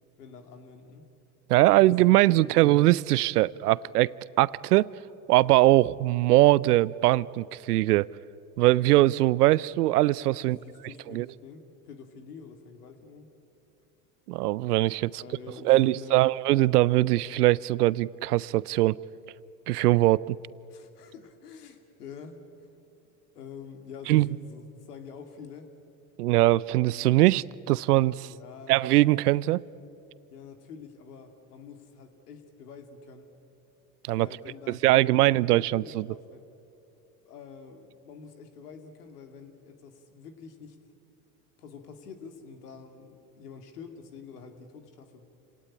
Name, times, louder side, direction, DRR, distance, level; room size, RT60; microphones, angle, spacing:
voice 1, 0.2-1.1 1.8-1.9 2.1-2.7 10.4-13.3 15.1-16.3 20.7-22.4 23.3-25.7 28.1-28.8 30.3-33.3 34.1-36.5 37.2-40.8 41.6-45.2, left 5 dB, 85° left, 2.5 m, -47 dB
voice 2, 1.5-4.9 5.3-8.1 8.6-10.6 11.1-11.3 14.3-15.2 15.6-19.0 19.7-20.4 24.1-24.3 26.2-28.3 28.7-29.6 34.0-34.3 34.7-36.1, right 17 dB, 85° right, 0.6 m, -21 dB
28.0 x 18.0 x 9.9 m
hypercardioid pair, 80°, 46 cm